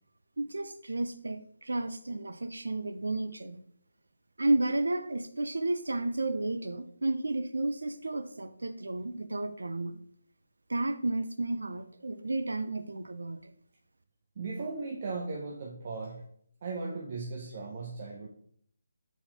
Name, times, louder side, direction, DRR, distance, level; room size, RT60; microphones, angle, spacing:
voice 1, 0.4-3.6 4.4-10.0 10.7-13.5, right 2 dB, 85° right, 10 dB, 0.4 m, -32 dB
voice 2, 14.4-16.2 16.6-18.3, right 3 dB, 40° right, -1 dB, 0.6 m, -37 dB
4.1 x 4.0 x 2.8 m, 0.63 s
figure-of-eight pair, 160°, 0 cm